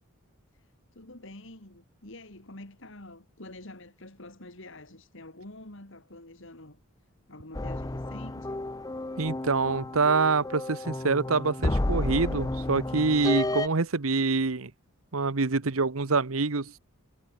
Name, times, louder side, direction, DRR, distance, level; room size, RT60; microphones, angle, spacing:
voice 1, 0.6-6.8 7.3-8.7, left 2 dB, 60° left, 3.4 m, -47 dB
sound 1, 7.5-13.7, left 2 dB, 15° left, 0.6 m, -31 dB
voice 2, 9.2-14.7 15.1-16.7, right 4 dB, 75° right, 1.1 m, -26 dB
head